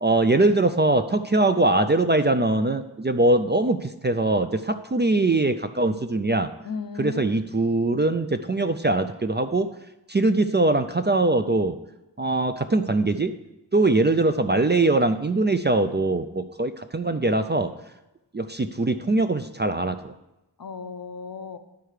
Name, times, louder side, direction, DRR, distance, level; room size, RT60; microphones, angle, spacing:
voice 1, 0.0-6.5 7.0-9.7 10.1-11.8 12.2-13.3 13.7-17.7 18.3-20.1, right 2 dB, 25° right, 8 dB, 0.4 m, -22 dB
voice 2, 6.6-7.4 20.6-21.6, left 5 dB, 55° left, 9 dB, 0.7 m, -35 dB
11.5 x 4.5 x 4.9 m, 0.94 s
wide cardioid pair, 55°, 42 cm